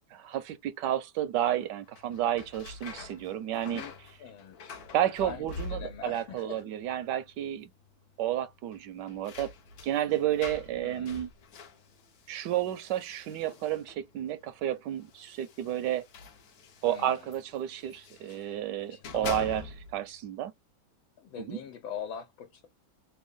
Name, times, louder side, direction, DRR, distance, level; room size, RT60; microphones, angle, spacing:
voice 1, 0.1-3.8 4.9-7.7 8.2-9.5 9.8-11.3 12.3-16.0 16.8-19.6 19.9-20.5 21.4-21.6, right 12 dB, 75° right, 1.0 m, -31 dB
sound 1, 1.9-6.3 6.5-7.2 7.5-7.6 8.7-14.1 15.0-18.5 18.9-20.1, left 4 dB, 60° left, 1.1 m, -45 dB
voice 2, 4.2-4.8 5.2-5.4 5.7-6.6 10.8-11.2 16.8-17.3 18.4-18.6 18.9-19.4 21.2-22.7, left 7 dB, 85° left, 1.5 m, -42 dB
3.5 x 2.2 x 3.6 m
omnidirectional pair, 2.1 m